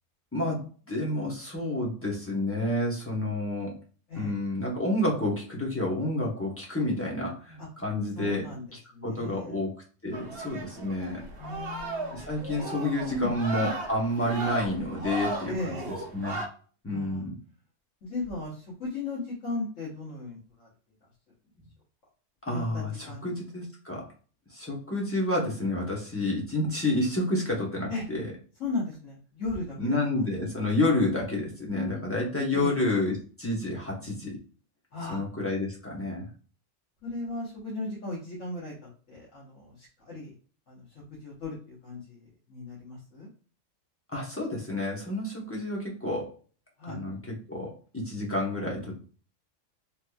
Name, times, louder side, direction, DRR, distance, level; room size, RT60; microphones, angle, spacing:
voice 1, 0.3-3.8 4.1-8.4 9.0-9.7 10.0-11.2 12.1-15.8 16.1-16.4 16.8-17.4 22.4-24.1 24.5-28.3 29.8-34.4 35.1-36.3 44.1-46.3 46.9-49.0, left 1 dB, 15° left, -2 dB, 0.8 m, -29 dB
voice 2, 8.1-8.7 8.9-9.6 11.4-12.2 13.1-13.4 15.5-15.9 16.9-17.3 18.0-20.7 22.5-23.3 27.9-28.0 28.6-30.2 32.5-32.8 34.9-35.2 37.0-40.3 40.7-43.3 46.8-47.0, left 2 dB, 75° left, -6 dB, 1.4 m, -36 dB
sound 1, 10.1-16.5, right 2 dB, 55° right, 1.0 m, -36 dB
3.3 x 3.0 x 2.2 m, 0.39 s
omnidirectional pair, 1.3 m